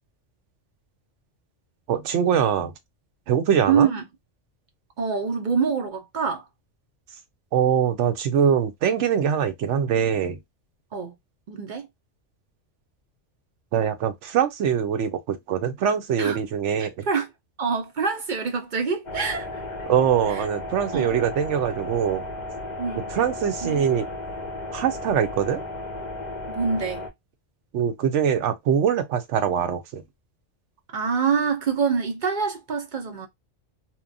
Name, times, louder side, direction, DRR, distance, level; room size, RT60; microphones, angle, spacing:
voice 1, 1.9-2.7 3.3-3.9 7.5-10.4 13.7-17.1 19.9-22.2 23.1-24.1 24.7-25.6 27.7-30.0, right 8 dB, 75° right, 0.9 m, -23 dB
voice 2, 3.7-4.0 5.0-6.4 10.9-11.1 11.5-11.9 16.2-16.4 16.8-17.3 17.6-19.5 20.3-20.4 20.9-21.2 22.8-23.1 23.6-23.8 26.5-27.1 30.9-33.3, right 6 dB, 60° right, 0.5 m, -25 dB
sound 1, 19.1-27.1, left 2 dB, 50° left, 0.6 m, -34 dB
2.9 x 2.2 x 2.5 m
omnidirectional pair, 1.3 m